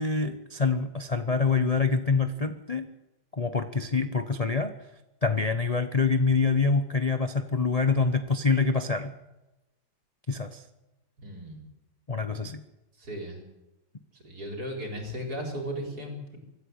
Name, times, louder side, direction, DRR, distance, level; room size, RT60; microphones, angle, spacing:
voice 1, 0.0-2.9 3.3-4.7 5.2-9.2 10.3-10.6 12.1-12.6, left 4 dB, 30° left, 9 dB, 0.7 m, -26 dB
voice 2, 11.2-11.6 13.0-13.4 14.1-16.4, equal, 50° right, 2 dB, 5.0 m, -36 dB
25.0 x 13.5 x 8.1 m, 0.99 s
omnidirectional pair, 2.1 m